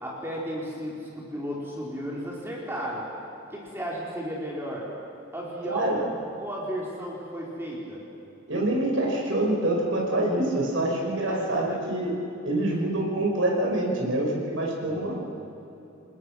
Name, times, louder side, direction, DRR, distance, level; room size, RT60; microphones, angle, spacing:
voice 1, 0.0-3.0 3.5-4.9 5.3-5.9 6.4-8.0 11.3-11.8 14.9-15.2, equal, 10° right, -4 dB, 3.9 m, -34 dB
voice 2, 5.6-6.1 8.5-12.2 12.4-15.2, right 1 dB, 75° right, -1 dB, 5.8 m, -26 dB
29.0 x 20.0 x 6.3 m, 2.9 s
head